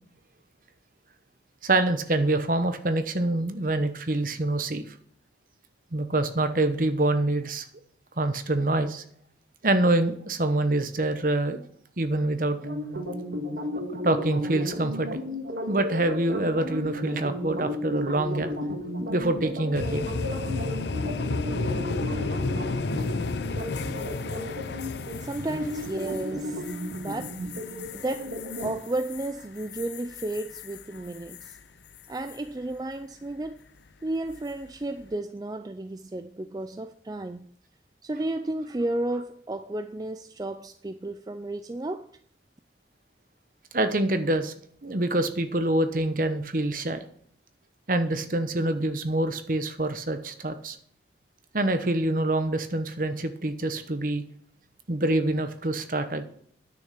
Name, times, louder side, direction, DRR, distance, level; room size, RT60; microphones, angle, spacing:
voice 1, 1.6-4.8 5.9-7.6 8.2-9.0 9.6-11.6 12.0-12.6 14.0-15.3 15.7-18.5 19.1-20.1 43.7-44.5 44.8-47.0 47.9-50.8 51.5-54.2 54.9-56.2, right 2 dB, 50° right, 0.9 m, -26 dB
sound 1, 12.6-28.8, left 1 dB, 75° right, 2.0 m, -34 dB
sound 2, 19.7-31.6 31.9-32.4 34.3-34.6, left 3 dB, 75° left, 0.6 m, -33 dB
voice 2, 25.2-26.7 27.0-27.4 27.9-31.6 32.1-33.6 34.0-37.5 38.0-42.1, right 2 dB, 20° right, 0.3 m, -33 dB
9.7 x 6.5 x 5.8 m
head